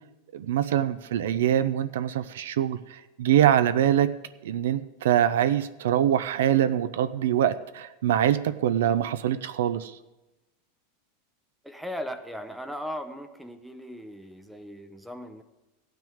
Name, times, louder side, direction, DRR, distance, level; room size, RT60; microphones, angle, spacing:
voice 1, 0.3-4.1 4.4-10.0, right 11 dB, 85° right, 13 dB, 0.5 m, -24 dB
voice 2, 11.6-15.4, equal, ahead, 8 dB, 0.6 m, -38 dB
15.0 x 9.1 x 3.6 m, 1.0 s
supercardioid pair, 150°, 0 cm